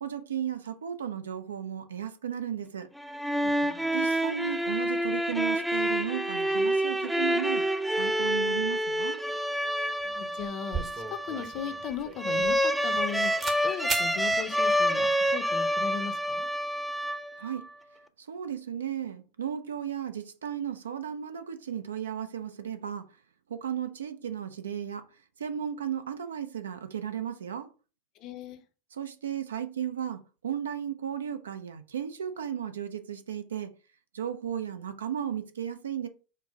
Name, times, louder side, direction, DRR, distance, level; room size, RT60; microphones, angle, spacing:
voice 1, 0.0-2.9 3.9-7.7 7.9-9.2 17.4-17.7 18.2-23.1 23.5-25.1 25.4-27.7 28.9-33.7 34.1-36.1, right 9 dB, 80° right, 0.5 m, -35 dB
sound 1, 3.0-17.6, equal, 5° right, 0.4 m, -28 dB
voice 2, 3.4-3.9 10.0-10.9 11.2-13.3 13.6-16.5 28.2-28.6, left 8 dB, 45° left, 0.6 m, -38 dB
sound 2, 10.0-10.1 10.4-13.1 13.4-13.6 13.9-14.1, right 4 dB, 30° right, 0.8 m, -36 dB
4.4 x 2.0 x 4.6 m
hypercardioid pair, 90°, 0 cm